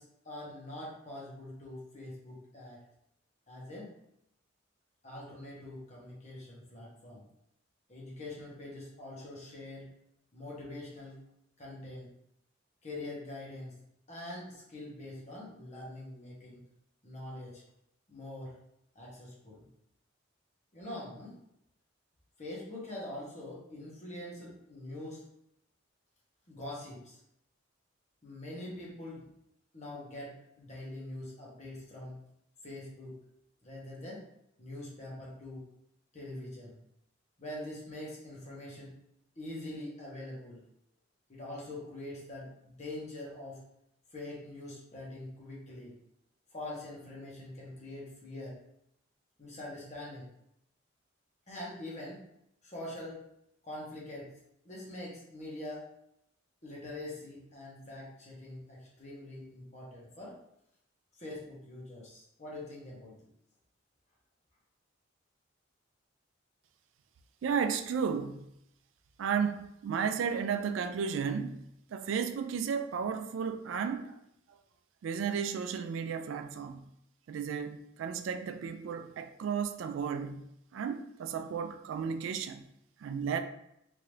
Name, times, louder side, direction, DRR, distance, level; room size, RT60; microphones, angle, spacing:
voice 1, 0.0-2.8 3.5-3.9 5.0-7.2 7.9-9.9 10.3-11.2 11.6-12.1 12.8-13.7 14.1-16.6 17.0-17.6 18.1-18.6 18.9-19.7 20.7-21.4 22.4-25.2 26.5-27.2 28.2-29.3 29.7-32.2 32.6-33.2 33.6-34.2 34.6-35.7 36.1-36.8 37.4-38.9 39.4-40.6 41.3-43.6 44.1-45.9 46.5-48.6 49.4-50.3 51.5-52.2 52.6-53.2 53.6-54.3 54.6-55.9 56.6-60.4 61.2-63.2, left 1 dB, 35° left, 1.3 m, -44 dB
voice 2, 67.4-68.5 69.2-71.6 71.9-74.2 75.0-76.8 77.3-82.6 83.0-83.4, right 6 dB, 80° right, 0.3 m, -33 dB
3.6 x 2.9 x 3.1 m
head